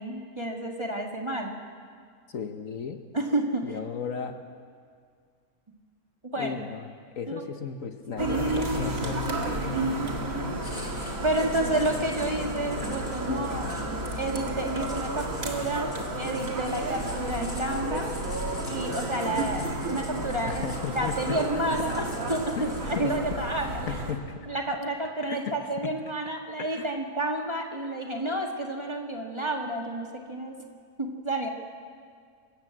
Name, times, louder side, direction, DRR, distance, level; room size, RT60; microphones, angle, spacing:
voice 1, 0.0-1.6 3.1-3.7 6.2-6.5 7.3-7.4 8.2-9.3 11.2-13.8 14.2-18.1 18.6-23.9 24.5-30.5 31.0-31.5, right 1 dB, 20° right, 1 dB, 1.7 m, -30 dB
voice 2, 2.3-3.0 3.6-4.4 6.4-6.9 7.2-9.2 13.3-13.7 20.5-22.0 22.6-23.1 23.6-24.4 25.3-25.5 25.8-25.9 26.7-27.0, left 6 dB, 60° left, 7 dB, 1.4 m, -35 dB
sound 1, 8.2-24.1, right 1 dB, 60° right, 2.5 m, -32 dB
Writing, 10.6-23.2, left 1 dB, 25° left, 3.2 m, -45 dB
25.0 x 13.5 x 7.9 m, 2.1 s
omnidirectional pair, 1.6 m